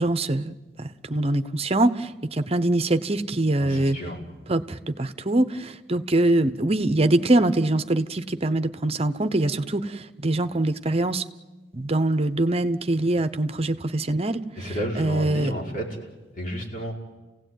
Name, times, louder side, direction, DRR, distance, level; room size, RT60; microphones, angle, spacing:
voice 1, 0.0-4.0 4.5-11.2 11.7-15.5, right 2 dB, 35° right, 11 dB, 0.9 m, -24 dB
voice 2, 3.6-4.2 14.6-15.8 16.4-16.9, equal, 50° left, 0 dB, 4.8 m, -31 dB
30.0 x 17.0 x 9.3 m, 1.2 s
head